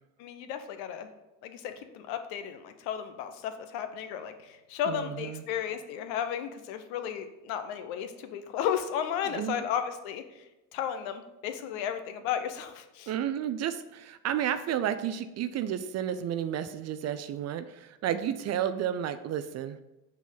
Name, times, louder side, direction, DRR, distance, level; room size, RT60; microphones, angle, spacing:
voice 1, 0.2-1.1 1.4-10.2 10.7-13.1, left 9 dB, 70° left, 9 dB, 0.9 m, -34 dB
voice 2, 4.9-5.4 9.2-9.6 13.1-19.8, right 10 dB, 35° right, 11 dB, 0.4 m, -32 dB
6.0 x 4.4 x 5.6 m, 0.98 s
supercardioid pair, 90°, 45 cm